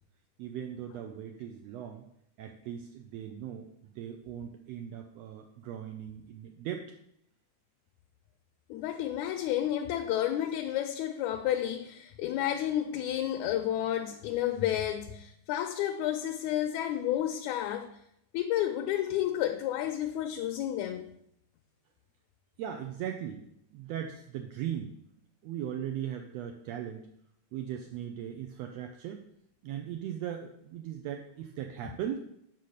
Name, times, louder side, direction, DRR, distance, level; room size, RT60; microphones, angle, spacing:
voice 1, 0.4-2.1 2.4-3.7 3.9-6.9 22.6-23.4 23.7-24.9 25.4-27.1 27.5-29.2 29.6-32.2, right 10 dB, 80° right, 4 dB, 1.5 m, -38 dB
voice 2, 8.7-17.9 18.3-21.1 31.8-32.0, left 11 dB, 80° left, 6 dB, 1.8 m, -31 dB
5.7 x 5.2 x 6.5 m, 0.75 s
omnidirectional pair, 3.5 m